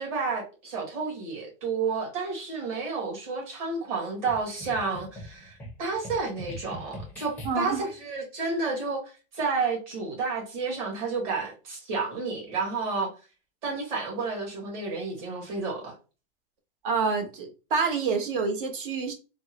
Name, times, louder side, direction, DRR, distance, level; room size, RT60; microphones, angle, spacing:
voice 1, 0.0-9.0 9.3-13.1 13.6-15.9, right 4 dB, 40° right, 1.6 m, -31 dB
sound 1, 4.3-7.9, equal, 5° left, 0.5 m, -42 dB
voice 2, 7.4-7.9 16.8-19.1, right 5 dB, 60° right, 1.0 m, -27 dB
3.5 x 2.1 x 2.8 m
supercardioid pair, 160°, 30 cm